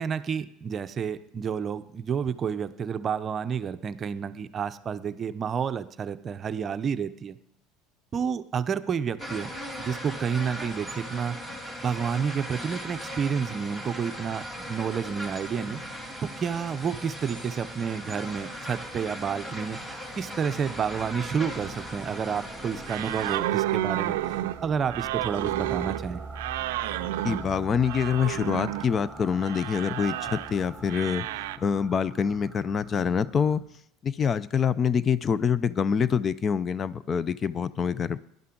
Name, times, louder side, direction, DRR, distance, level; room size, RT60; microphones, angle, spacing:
voice 1, 0.0-7.4 8.1-9.5 9.8-11.4 11.8-15.8 16.2-19.8 20.2-24.2 24.6-26.2, right 7 dB, 35° right, 12 dB, 0.6 m, -30 dB
sound 1, 9.2-23.4, equal, 15° left, 2.6 m, -38 dB
sound 2, 20.2-33.6, right 3 dB, 15° right, 2.6 m, -44 dB
sound 3, 22.9-28.9 29.4-30.5 30.9-31.6, right 15 dB, 80° right, 0.4 m, -31 dB
voice 2, 27.2-31.3 31.6-33.6 34.0-38.2, left 7 dB, 35° left, 17 dB, 0.4 m, -26 dB
17.0 x 10.5 x 3.8 m, 0.73 s
supercardioid pair, 95°, 0 cm